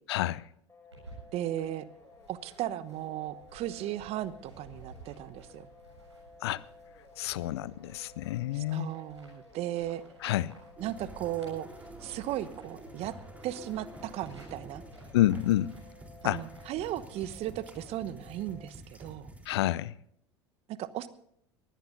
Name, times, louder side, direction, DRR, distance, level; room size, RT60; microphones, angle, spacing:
voice 1, 0.1-0.5 6.4-6.6 7.2-8.9 10.2-10.5 15.1-15.7 16.2-16.4 19.5-19.9, left 14 dB, 65° left, 0.6 m, -28 dB
sound 1, 0.7-18.7, left 3 dB, 15° left, 5.3 m, -56 dB
sound 2, 0.9-17.5, right 2 dB, 90° right, 7.5 m, -55 dB
voice 2, 1.3-1.9 2.3-5.7 8.5-10.0 10.8-11.7 12.0-13.2 13.4-14.8 16.2-19.3 20.7-21.1, right 13 dB, 45° right, 1.0 m, -36 dB
sound 3, 10.8-19.6, right 1 dB, 10° right, 3.7 m, -49 dB
22.0 x 17.0 x 2.7 m
figure-of-eight pair, 75°, 14 cm